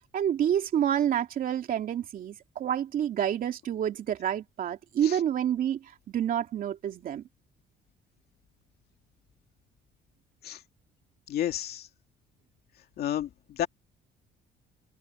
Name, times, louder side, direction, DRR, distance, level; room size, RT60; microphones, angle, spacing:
voice 1, 0.1-7.2, right 10 dB, 55° right, 2.9 m, -28 dB
voice 2, 11.3-11.9 13.0-13.7, left 11 dB, 60° left, 2.5 m, -31 dB
open air
cardioid pair, 145°, 18 cm